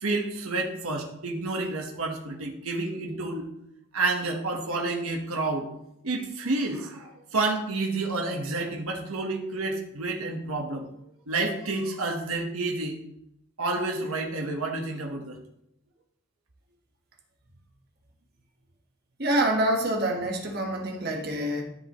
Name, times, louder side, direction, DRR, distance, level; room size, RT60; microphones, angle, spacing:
voice 1, 0.0-3.5 3.9-5.7 6.0-10.9 11.3-13.0 13.6-15.4, right 2 dB, 85° right, 2 dB, 1.3 m, -29 dB
voice 2, 19.2-21.6, right 1 dB, 45° right, 2 dB, 1.5 m, -26 dB
13.5 x 5.3 x 3.1 m, 0.78 s
head